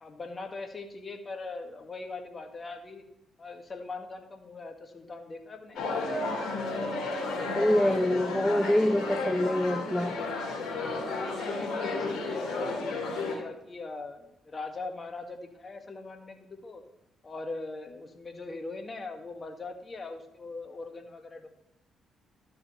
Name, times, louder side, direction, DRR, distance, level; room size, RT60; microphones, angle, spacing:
voice 1, 0.0-3.0 3.4-5.8 10.7-16.8 17.2-21.5, left 3 dB, 40° left, 5 dB, 1.5 m, -41 dB
sound 1, 5.8-13.3, left 3 dB, 60° left, 2.5 m, -32 dB
voice 2, 7.6-10.2, left 1 dB, 5° left, 12 dB, 0.3 m, -25 dB
13.0 x 6.4 x 3.1 m, 0.85 s
hypercardioid pair, 45°, 0 cm